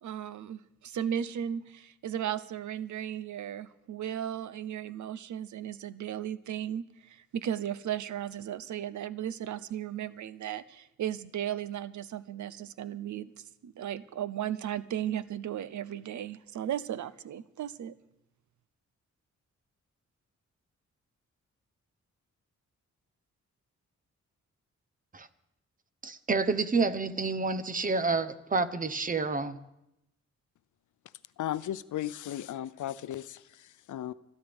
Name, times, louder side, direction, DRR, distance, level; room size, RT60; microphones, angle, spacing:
voice 1, 0.0-13.3 13.6-17.9, right 10 dB, 75° right, 15 dB, 0.7 m, -35 dB
voice 2, 26.0-29.6, right 4 dB, 30° right, 12 dB, 0.8 m, -29 dB
voice 3, 31.4-34.1, left 12 dB, 85° left, 16 dB, 0.6 m, -36 dB
27.0 x 11.0 x 3.5 m, 0.89 s
wide cardioid pair, 120°, 29 cm